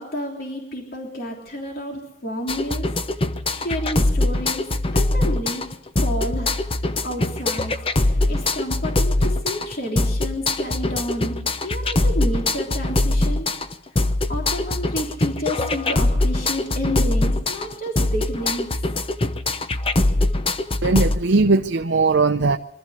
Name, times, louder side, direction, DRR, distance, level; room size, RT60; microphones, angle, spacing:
voice 1, 0.0-3.0 3.5-5.7 6.0-6.5 7.0-13.5 13.9-18.8, equal, 55° left, 3.4 m, -30 dB
sound 1, 2.5-21.2, left 2 dB, 30° left, 0.8 m, -22 dB
voice 2, 20.8-22.6, right 3 dB, 70° right, 0.7 m, -18 dB
23.5 x 13.5 x 8.2 m
head